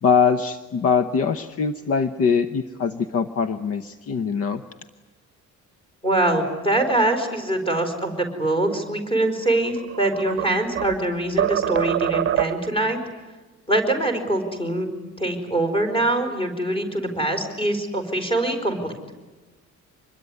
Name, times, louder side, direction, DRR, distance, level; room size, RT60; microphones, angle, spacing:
voice 1, 0.0-4.6, left 6 dB, 50° left, 10 dB, 1.0 m, -22 dB
voice 2, 6.0-13.0 13.7-14.9 15.2-19.0, right 1 dB, 20° left, 5 dB, 4.8 m, -23 dB
sound 1, 9.6-11.0 11.4-12.8, right 11 dB, 45° right, 0.8 m, -24 dB
25.5 x 21.5 x 9.9 m, 1.2 s
cardioid pair, 175°, 29 cm